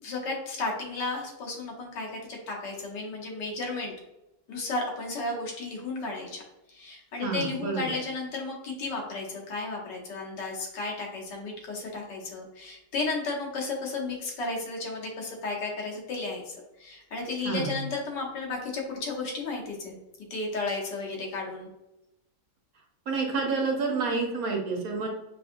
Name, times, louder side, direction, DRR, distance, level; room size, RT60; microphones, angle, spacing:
voice 1, 0.0-3.9 4.5-6.4 6.7-20.0 20.3-21.7, left 3 dB, 85° left, -1 dB, 1.6 m, -33 dB
voice 2, 7.2-7.9 17.4-17.7 23.1-25.1, right 4 dB, 65° right, 0 dB, 1.2 m, -29 dB
5.4 x 2.6 x 2.5 m, 0.92 s
omnidirectional pair, 1.8 m